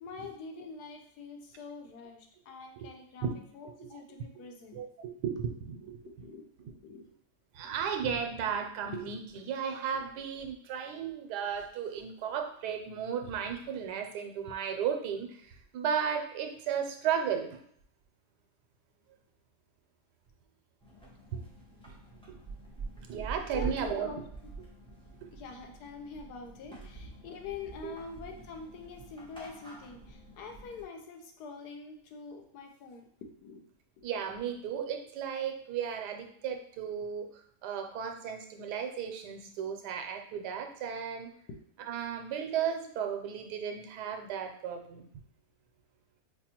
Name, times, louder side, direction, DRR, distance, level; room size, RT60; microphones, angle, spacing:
voice 1, 0.0-3.3 3.5-4.8 6.1-6.4 6.8-7.1 7.6-7.8 23.5-24.2 25.3-33.6 34.0-34.1 41.5-41.6, left 5 dB, 80° left, 3 dB, 1.2 m, -45 dB
voice 2, 4.7-6.0 7.5-17.6 21.3-21.4 23.0-24.1 27.8-27.9 34.0-41.3 41.8-45.1, right 7 dB, 90° right, 5 dB, 1.2 m, -34 dB
sound 1, 20.8-30.8, right 3 dB, 5° left, 0.6 m, -45 dB
5.1 x 2.3 x 2.8 m, 0.67 s
omnidirectional pair, 1.7 m